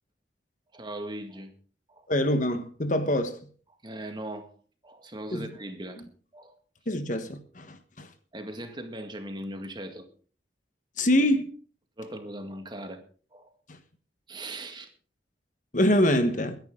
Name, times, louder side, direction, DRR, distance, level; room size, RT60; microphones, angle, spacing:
voice 1, 0.7-1.5 1.9-2.1 3.8-4.5 4.8-6.0 6.3-6.5 8.3-10.1 12.0-13.0 13.3-13.5 14.3-14.9, right 1 dB, 25° right, 2.0 m, -39 dB
voice 2, 2.1-3.4 5.3-5.5 6.9-8.1 11.0-11.4 13.7-13.8 15.7-16.6, left 1 dB, 45° left, 1.4 m, -25 dB
22.5 x 10.5 x 3.8 m
head